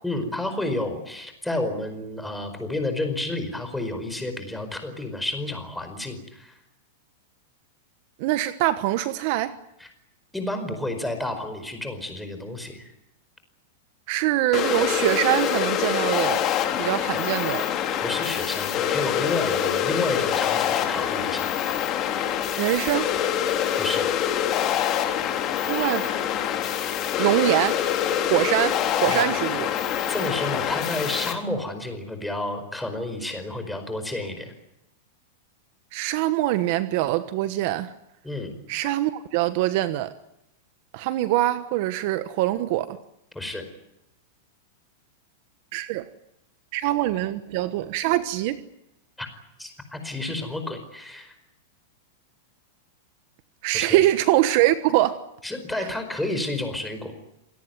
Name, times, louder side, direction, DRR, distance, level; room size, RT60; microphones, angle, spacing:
voice 1, 0.0-6.6 9.8-9.9 10.3-12.9 18.0-21.5 23.8-24.1 29.1-29.2 30.1-34.5 38.2-38.5 43.3-43.6 49.2-49.3 49.6-51.3 53.7-54.0 55.4-57.1, left 2 dB, 5° left, 4.9 m, -30 dB
voice 2, 8.2-9.6 14.1-16.5 16.8-17.7 22.6-23.1 25.7-26.2 27.2-27.9 28.2-29.7 35.9-37.9 38.7-40.1 40.9-43.0 45.7-46.1 46.7-48.6 53.6-55.2 55.8-55.9, right 15 dB, 50° right, 1.2 m, -24 dB
sound 1, 14.5-31.3, left 10 dB, 30° left, 3.5 m, -25 dB
28.0 x 18.0 x 9.4 m
supercardioid pair, 155°, 0 cm